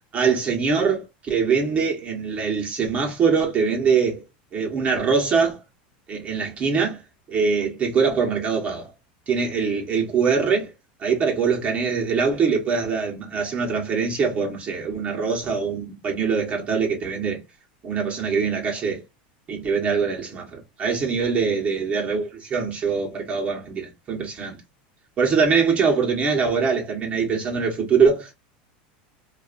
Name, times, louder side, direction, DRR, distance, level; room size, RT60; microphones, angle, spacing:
voice 1, 0.1-4.2 4.5-5.6 6.1-7.0 7.3-8.9 9.3-10.7 11.0-17.4 17.8-19.0 19.5-24.6 25.2-28.3, right 5 dB, 30° right, 1.0 m, -23 dB
2.5 x 2.3 x 2.4 m
supercardioid pair, 135°, 5 cm